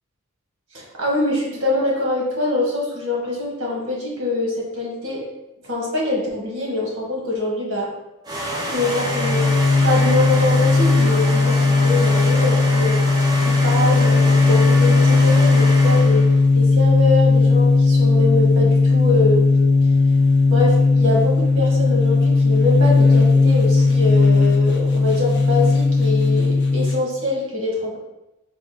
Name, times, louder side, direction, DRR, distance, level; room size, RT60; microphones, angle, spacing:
voice 1, 0.7-5.2 5.6-7.9 8.7-9.5 9.8-13.0 13.4-16.3 16.5-19.5 20.5-28.0, left 2 dB, 65° right, -3 dB, 1.1 m, -24 dB
sound 1, 8.3-16.4, equal, 20° right, 0.5 m, -27 dB
sound 2, 8.8-27.0, left 3 dB, 50° left, 0.5 m, -16 dB
3.6 x 2.4 x 3.6 m, 0.97 s
head